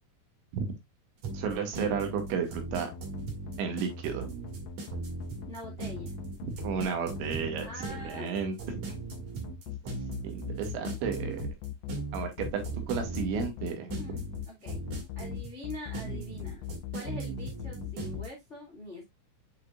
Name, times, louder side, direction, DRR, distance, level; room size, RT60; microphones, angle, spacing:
sound 1, 1.2-18.3, right 3 dB, 50° right, 2.9 m, -38 dB
voice 1, 1.3-2.9 3.6-4.3 6.6-7.7 8.0-9.0 10.2-11.5 12.1-13.9, right 6 dB, 80° right, 3.9 m, -33 dB
sound 2, 2.7-18.3, left 10 dB, 85° left, 2.3 m, -40 dB
voice 2, 5.5-6.2 7.6-8.4 14.0-14.8 15.1-16.7 16.9-19.0, left 1 dB, 55° left, 0.7 m, -44 dB
8.2 x 5.1 x 2.4 m
omnidirectional pair, 5.3 m